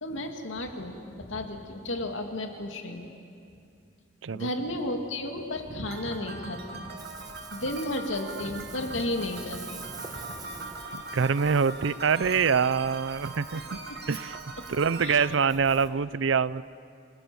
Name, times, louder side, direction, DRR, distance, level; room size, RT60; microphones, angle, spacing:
voice 1, 0.0-3.1 4.3-7.0 7.5-9.8 10.2-10.4 15.0-15.4, left 1 dB, 75° left, 4 dB, 2.3 m, -33 dB
sound 1, 5.8-15.3, right 3 dB, 55° right, 1.9 m, -41 dB
Ocean, 7.0-15.9, right 4 dB, 20° right, 1.3 m, -47 dB
voice 2, 10.9-13.8 14.1-14.4 14.7-16.6, right 6 dB, 70° right, 19 dB, 0.5 m, -25 dB
29.0 x 20.5 x 7.0 m, 2.5 s
head